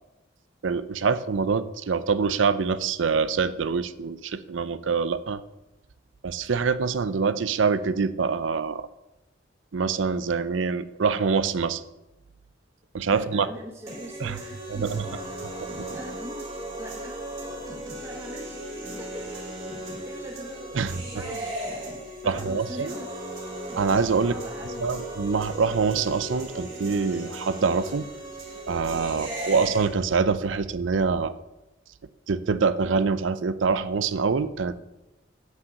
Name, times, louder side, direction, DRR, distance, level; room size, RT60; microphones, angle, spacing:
voice 1, 0.6-5.4 6.2-8.9 9.7-11.8 12.9-13.5 14.2-14.4 14.7-15.0 20.7-21.2 22.2-22.9 23.8-24.3 24.8-28.1 28.7-31.3 32.3-34.8, right 5 dB, 85° right, 14 dB, 0.5 m, -25 dB
voice 2, 13.1-15.4 15.9-16.4 16.8-17.2 18.0-18.7 19.0-19.4 20.0-20.5 21.1-21.5 22.2-23.1 24.2-24.9, equal, 15° right, 0 dB, 0.9 m, -42 dB
sound 1, 13.9-29.9, right 1 dB, 35° right, 3.1 m, -36 dB
7.8 x 5.7 x 7.7 m, 0.98 s
head